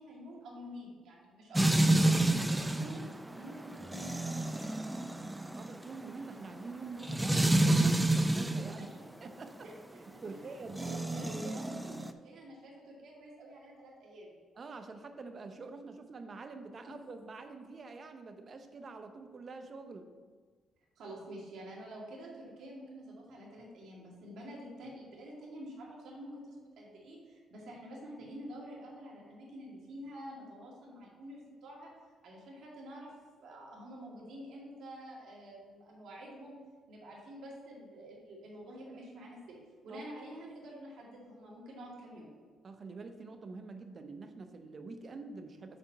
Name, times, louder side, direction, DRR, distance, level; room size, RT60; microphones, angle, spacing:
voice 1, 0.0-3.0 3.3-4.6 8.7-9.1 9.6-10.6 10.8-14.4 16.9-17.0 21.0-31.9 32.2-33.1 33.4-36.6 36.9-39.6 39.8-42.3, equal, 75° right, -3 dB, 2.2 m, -48 dB
sound 1, 1.5-8.8 10.7-12.1, right 1 dB, 10° right, 0.4 m, -29 dB
voice 2, 5.5-8.9 9.2-9.7 10.2-11.9 14.5-20.1 39.9-40.0 42.6-45.8, right 3 dB, 45° right, 7 dB, 0.7 m, -46 dB
6.7 x 4.3 x 5.7 m, 1.5 s
cardioid pair, 90°, 0 cm